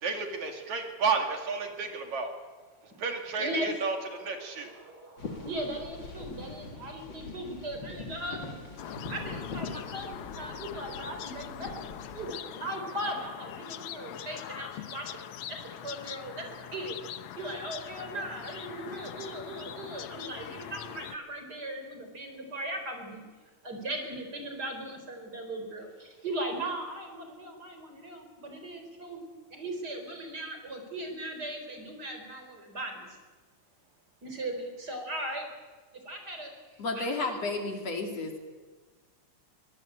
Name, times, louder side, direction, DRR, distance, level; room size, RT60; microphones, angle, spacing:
voice 1, 0.0-2.3 2.8-4.7, right 4 dB, 65° right, 4 dB, 3.6 m, -32 dB
voice 2, 3.4-3.7 4.2-15.2 15.5-17.0 17.4-23.2 23.6-29.2 29.5-33.1 34.2-35.5 35.9-37.4, right 1 dB, 30° right, 5 dB, 4.7 m, -38 dB
sound 1, 5.2-12.3, left 3 dB, 40° left, 3.1 m, -42 dB
sound 2, 8.8-21.2, left 11 dB, 70° left, 1.4 m, -42 dB
voice 3, 36.8-38.4, left 3 dB, 55° left, 4 dB, 3.6 m, -32 dB
23.5 x 19.5 x 8.7 m, 1.3 s
omnidirectional pair, 3.6 m